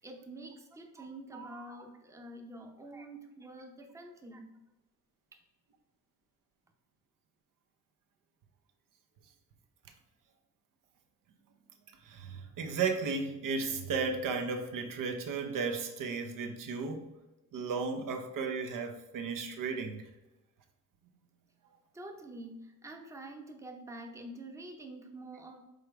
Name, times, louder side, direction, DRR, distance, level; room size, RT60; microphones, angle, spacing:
voice 1, 0.0-4.6 5.3-5.4 21.9-25.6, right 2 dB, 10° right, 4 dB, 0.6 m, -47 dB
voice 2, 12.0-17.1 17.5-20.1, right 5 dB, 80° right, 5 dB, 0.9 m, -34 dB
5.3 x 3.9 x 4.6 m, 1.0 s
cardioid pair, 135°, 32 cm